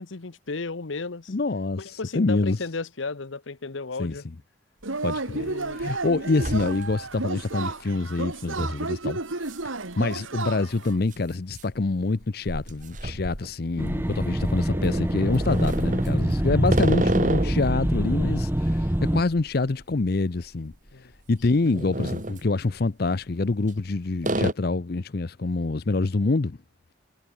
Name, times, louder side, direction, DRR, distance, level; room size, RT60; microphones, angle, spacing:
voice 1, 0.0-1.3 1.8-4.2 5.3-5.8 20.9-21.1, left 3 dB, 75° left, 1.0 m, -34 dB
voice 2, 1.3-2.6 4.0-4.1 5.0-9.5 10.0-20.7 21.3-26.6, left 3 dB, 50° left, 0.6 m, -26 dB
sound 1, 4.8-4.9 5.4-5.8 6.1-7.2 7.5-7.6 8.6-8.8 9.5-9.6 9.9-10.0 11.0-14.1 14.6-17.7 18.1-20.5 20.7-20.9 21.4-22.4 23.3-23.9 24.2-24.5, right 1 dB, 40° right, 2.7 m, -31 dB
Yell / Cheering, 4.8-10.9, right 3 dB, 85° right, 2.2 m, -32 dB
sound 2, 13.8-19.2, right 1 dB, 10° right, 0.7 m, -25 dB
head